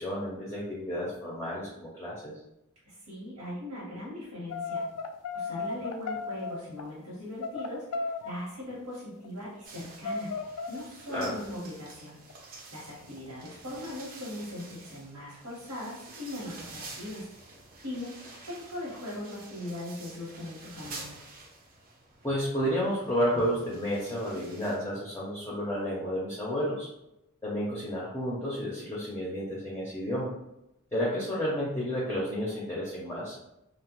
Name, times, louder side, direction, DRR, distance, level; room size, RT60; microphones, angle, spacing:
voice 1, 0.0-2.3 11.1-11.3 22.2-26.9 27.4-30.3 30.9-33.4, equal, 10° left, -7 dB, 0.5 m, -31 dB
voice 2, 2.8-4.8 5.3-10.3 10.7-12.2 12.7-18.1 18.4-21.2, left 1 dB, 85° right, -7 dB, 0.9 m, -40 dB
sound 1, 4.5-6.9 7.4-8.3 8.7-8.8 9.0-9.8 10.0-10.9 11.2-11.5 12.1-12.4 13.0-13.3, left 4 dB, 85° left, 0.3 m, -35 dB
sound 2, 9.6-24.8, right 3 dB, 40° right, 0.5 m, -49 dB
2.9 x 2.0 x 2.8 m, 0.87 s
head